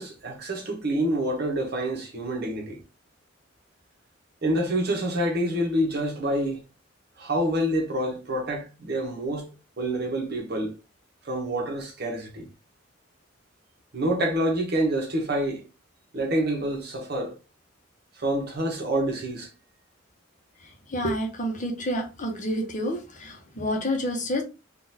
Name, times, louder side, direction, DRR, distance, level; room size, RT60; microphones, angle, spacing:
voice 1, 0.0-2.8 4.4-6.6 7.2-10.7 11.2-12.5 13.9-15.6 16.1-17.3 18.2-19.5, right 1 dB, 55° right, 1.1 m, -27 dB
voice 2, 20.6-24.4, equal, 40° left, 0.8 m, -29 dB
3.8 x 2.4 x 2.7 m
head